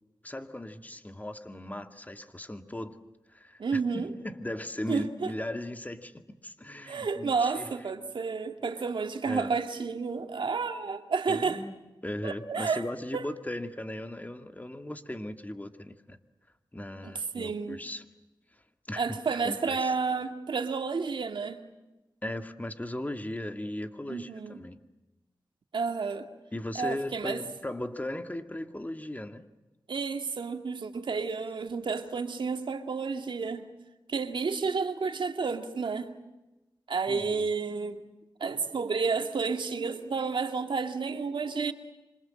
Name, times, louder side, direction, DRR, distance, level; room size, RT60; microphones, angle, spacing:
voice 1, 0.2-3.0 3.3-7.7 9.3-9.5 11.3-16.2 16.7-18.1 18.9-19.9 22.2-24.8 26.5-29.5 37.1-37.5, left 1 dB, 20° left, 2.1 m, -38 dB
voice 2, 3.6-4.1 4.9-5.3 6.9-11.6 12.2-12.8 13.1-13.3 17.0-17.8 19.0-21.6 24.1-24.6 25.7-26.3 26.8-27.4 29.9-33.7 34.1-36.1 36.9-38.0 38.4-41.7, right 5 dB, 80° right, 2.1 m, -31 dB
27.0 x 26.0 x 7.8 m
cardioid pair, 55°, 8 cm